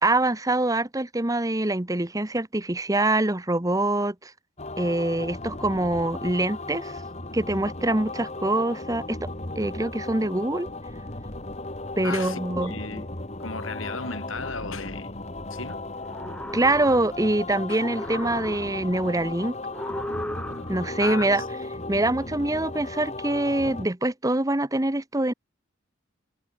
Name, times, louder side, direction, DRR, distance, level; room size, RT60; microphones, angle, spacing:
voice 1, 0.0-4.3 4.8-7.0 7.3-9.3 9.6-10.7 12.0-13.0 16.5-19.6 20.7-21.4 21.9-25.3, right 2 dB, 15° right, 1.1 m, -24 dB
sound 1, 4.6-23.9, left 2 dB, 35° left, 3.0 m, -36 dB
voice 2, 12.0-13.1 13.4-15.2 15.5-15.8 17.7-17.8 21.0-21.4, left 4 dB, 80° left, 5.8 m, -35 dB
sound 2, 15.9-17.4 17.7-19.0 19.7-21.0, left 1 dB, 5° left, 3.6 m, -36 dB
head